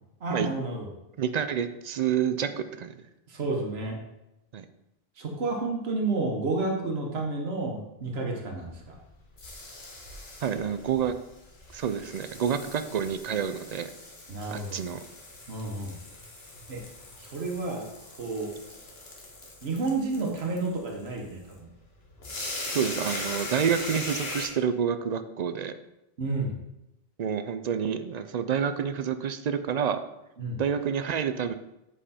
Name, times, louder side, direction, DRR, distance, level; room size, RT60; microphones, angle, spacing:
voice 1, 0.2-0.9 3.3-4.0 5.2-8.9 14.3-14.8 15.5-16.0 16.7-16.8 17.2-17.9 18.2-18.5 19.6-21.7 26.2-26.6 30.4-30.6, right 3 dB, 85° right, 0 dB, 1.3 m, -31 dB
voice 2, 1.2-3.0 4.5-4.6 10.4-11.2 11.7-13.9 14.5-15.0 22.7-25.7 27.2-30.0 30.6-31.5, right 8 dB, 55° right, 10 dB, 0.5 m, -28 dB
sound 1, 8.6-24.5, left 2 dB, 75° left, 1.6 m, -40 dB
7.5 x 5.0 x 4.3 m, 0.91 s
omnidirectional pair, 1.0 m